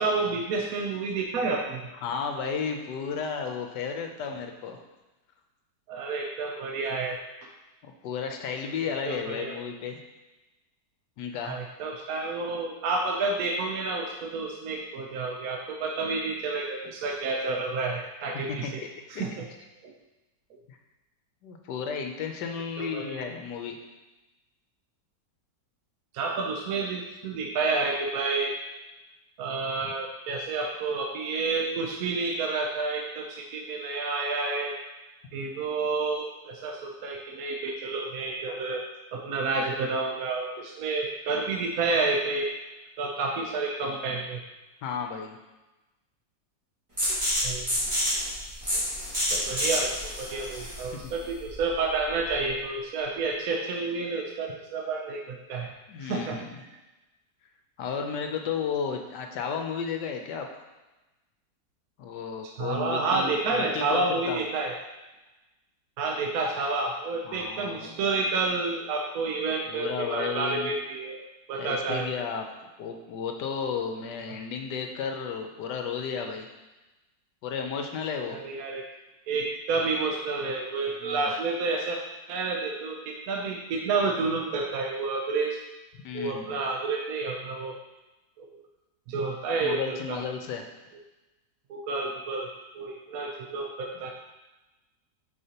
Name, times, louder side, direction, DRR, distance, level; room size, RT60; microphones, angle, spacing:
voice 1, 0.0-1.8 5.9-7.2 8.8-9.6 11.4-18.8 19.1-19.5 19.8-19.9 22.8-23.2 26.1-28.6 29.4-34.8 35.3-38.9 39.1-42.5 43.0-44.4 47.4-47.7 48.7-48.8 49.3-55.7 56.0-56.4 62.4-64.8 66.0-71.2 71.5-72.1 78.3-78.8 79.3-82.0 82.3-85.6 86.1-87.8 88.4-88.6 89.1-90.2 91.7-92.5 92.7-94.1, right 3 dB, 65° right, 1 dB, 1.0 m, -30 dB
voice 2, 2.0-4.8 7.8-10.0 11.2-11.6 18.5-19.2 20.7-20.8 21.4-23.8 44.8-45.4 51.0-51.1 55.9-56.6 57.8-60.6 62.0-64.4 67.3-67.9 69.7-70.7 71.6-72.5 72.8-76.5 77.4-78.4 81.0-81.3 86.0-86.6 89.1-89.2 89.6-90.7, left 6 dB, 75° left, 4 dB, 1.2 m, -33 dB
sound 1, 47.0-52.5, equal, 20° right, 1.5 m, -29 dB
6.5 x 5.5 x 2.8 m, 1.1 s
omnidirectional pair, 1.9 m